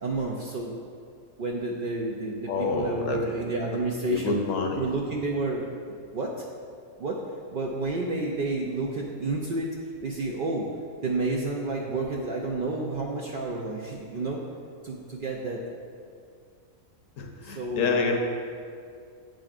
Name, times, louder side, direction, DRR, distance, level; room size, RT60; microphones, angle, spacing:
voice 1, 0.0-0.7 1.4-4.4 4.7-5.6 6.1-6.5 7.0-7.2 7.5-10.7 11.0-14.4 14.8-15.6 17.4-18.0, right 2 dB, 85° right, -2 dB, 0.4 m, -30 dB
voice 2, 2.5-3.2 4.1-4.8 17.2-18.2, left 4 dB, 65° left, 3 dB, 1.0 m, -27 dB
8.8 x 5.1 x 2.4 m, 2.3 s
omnidirectional pair, 1.5 m